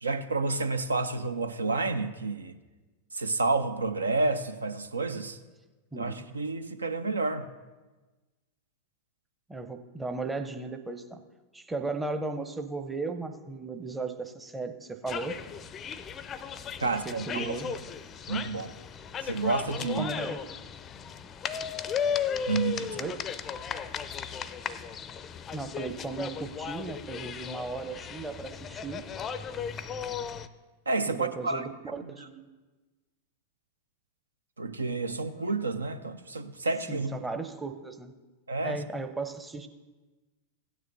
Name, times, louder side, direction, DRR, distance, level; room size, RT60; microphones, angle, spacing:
voice 1, 0.0-2.5 3.1-5.4 6.0-7.5 16.8-17.5 18.3-18.8 19.2-20.0 22.5-23.0 30.9-31.7 34.6-37.1 38.5-38.8, right 3 dB, 75° right, 0.4 m, -30 dB
voice 2, 5.9-6.2 9.5-11.2 11.5-15.3 16.8-17.7 19.9-20.4 22.9-23.2 25.5-29.0 31.1-32.5 36.9-38.2 38.6-39.7, right 3 dB, 10° right, 0.7 m, -36 dB
sound 1, 15.1-30.5, left 7 dB, 25° left, 0.4 m, -36 dB
16.0 x 9.4 x 2.6 m
figure-of-eight pair, 90°, 0 cm